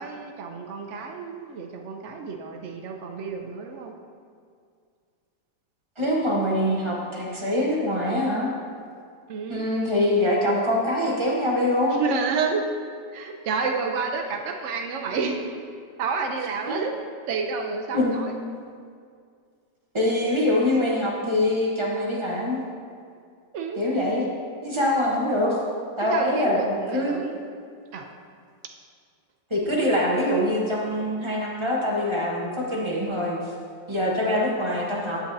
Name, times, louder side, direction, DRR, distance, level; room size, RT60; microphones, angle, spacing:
voice 1, 0.0-3.9 9.3-9.7 12.0-12.6 13.1-15.4 16.0-16.9 17.3-18.3 23.5-23.8 26.1-27.5 27.9-28.1, right 5 dB, 85° right, 3 dB, 0.6 m, -29 dB
voice 2, 6.0-8.5 9.5-12.0 16.7-16.8 17.9-18.2 19.9-22.6 23.8-24.3 24.6-25.6 26.0-27.2 29.5-33.4 33.9-35.2, left 1 dB, 25° right, -3 dB, 0.7 m, -24 dB
11.0 x 7.7 x 2.6 m, 2.2 s
omnidirectional pair, 2.0 m